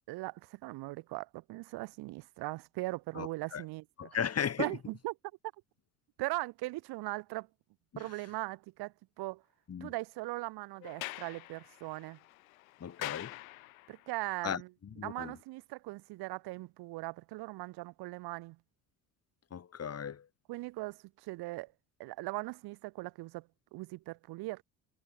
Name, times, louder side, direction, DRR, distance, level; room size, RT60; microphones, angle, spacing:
voice 1, 0.1-4.1 4.6-5.2 6.2-7.5 8.0-9.4 9.8-12.2 13.9-14.7 15.0-18.6 20.5-21.7 22.0-24.6, right 21 dB, 65° right, 5.3 m, -39 dB
voice 2, 3.1-3.6 4.0-4.8 7.9-8.1 9.7-9.9 12.8-13.3 14.4-14.6 15.0-15.4 19.5-20.3, left 8 dB, 35° left, 3.4 m, -36 dB
Sliding door, 10.8-14.1, left 18 dB, 80° left, 1.1 m, -45 dB
hypercardioid pair, 60°, 41 cm